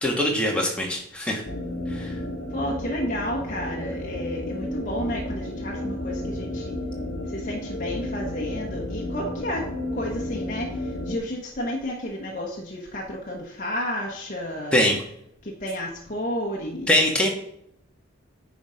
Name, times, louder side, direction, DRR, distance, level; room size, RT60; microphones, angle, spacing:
voice 1, 0.0-1.4 1.9-2.1 14.7-15.0 16.9-17.3, left 1 dB, 5° left, -1 dB, 1.5 m, -22 dB
sound 1, 1.4-11.2, left 1 dB, 60° left, 1.4 m, -32 dB
voice 2, 2.5-6.8 7.3-14.9 15.4-16.9, equal, 40° left, -2 dB, 1.2 m, -31 dB
9.9 x 4.0 x 5.0 m, 0.72 s
head